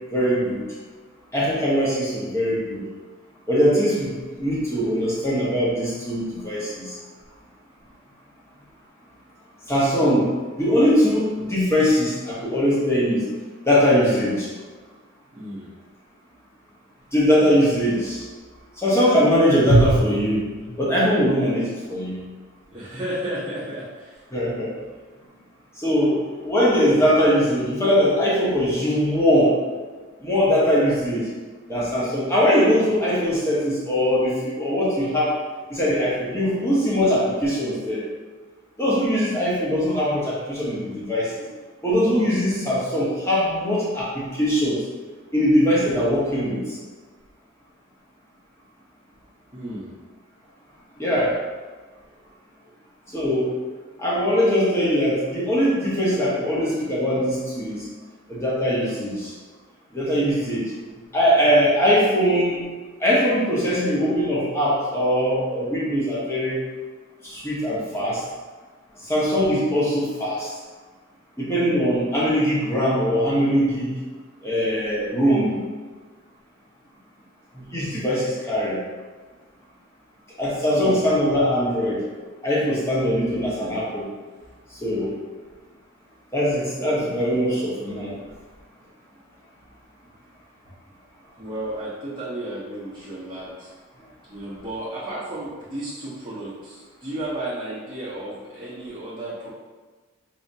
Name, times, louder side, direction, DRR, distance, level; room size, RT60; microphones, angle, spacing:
voice 1, 0.1-0.7 1.3-2.8 3.5-7.0 9.7-13.2 13.7-14.5 17.1-18.2 18.8-20.4 20.8-22.2 24.3-24.7 25.8-29.6 30.2-31.2 31.7-35.3 35.7-38.0 38.8-41.3 41.8-44.8 45.3-46.6 51.0-51.3 53.1-53.5 54.0-57.9 58.3-59.3 59.9-60.7 61.1-62.6 63.0-66.6 67.2-68.2 69.1-70.5 71.4-73.9 74.4-75.6 77.5-78.8 80.4-82.0 82.4-84.0 84.8-85.1 86.3-88.1, equal, 15° left, -7 dB, 1.0 m, -21 dB
voice 2, 15.3-15.7 22.7-24.2 49.5-49.9 80.7-81.1 91.4-93.7 94.3-99.5, right 1 dB, 20° right, -11 dB, 0.8 m, -33 dB
4.7 x 2.8 x 2.7 m, 1.3 s
head